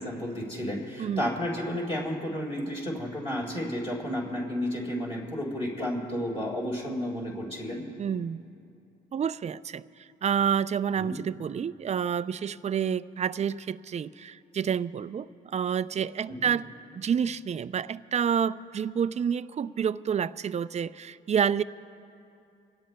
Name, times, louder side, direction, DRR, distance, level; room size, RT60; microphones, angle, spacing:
voice 1, 0.0-7.8 11.0-11.2 16.3-16.5, equal, 30° left, -4 dB, 3.8 m, -32 dB
voice 2, 8.0-8.4 9.1-16.7 16.9-21.6, right 8 dB, 35° right, 15 dB, 0.4 m, -29 dB
28.0 x 16.5 x 2.2 m, 2.6 s
cardioid pair, 90°, 20 cm